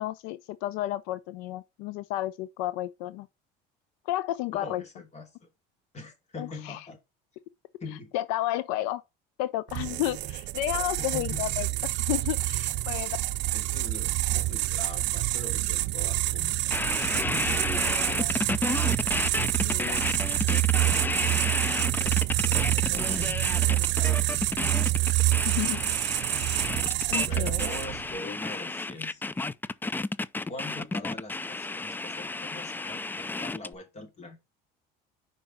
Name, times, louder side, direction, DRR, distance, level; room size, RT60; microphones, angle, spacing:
voice 1, 0.0-3.3 4.1-4.8 6.4-6.9 8.1-9.0 9.4-11.7 11.9-13.2 17.5-19.0 19.6-20.2 25.4-25.8 27.1-27.7, left 15 dB, 80° left, 0.6 m, -32 dB
voice 2, 4.5-5.5 5.9-7.0 7.8-8.1 10.2-10.3 11.0-11.6 13.5-17.6 20.6-21.1 21.8-24.8 25.4-25.9 27.2-29.2 30.4-34.4, left 3 dB, 30° left, 2.9 m, -43 dB
sound 1, 9.7-28.1, right 18 dB, 60° right, 0.6 m, -27 dB
sound 2, 16.7-33.7, left 3 dB, 10° left, 0.3 m, -31 dB
5.4 x 5.0 x 5.8 m
supercardioid pair, 100°, 21 cm